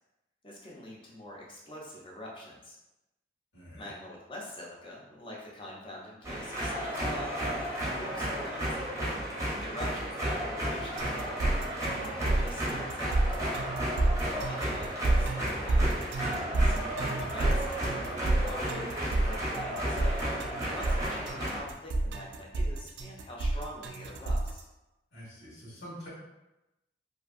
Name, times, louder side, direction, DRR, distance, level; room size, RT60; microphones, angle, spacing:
voice 1, 0.4-2.8 3.7-7.5 7.9-9.0 9.6-13.4 14.5-20.2 20.7-24.6, left 1 dB, 30° left, -4 dB, 0.6 m, -44 dB
voice 2, 3.5-3.9 25.1-26.1, equal, 90° left, -8 dB, 1.2 m, -46 dB
sound 1, 6.2-21.6, right 1 dB, 15° right, 0.7 m, -33 dB
sound 2, 11.0-24.6, right 2 dB, 70° right, 0.4 m, -29 dB
2.8 x 2.5 x 2.4 m, 0.96 s
head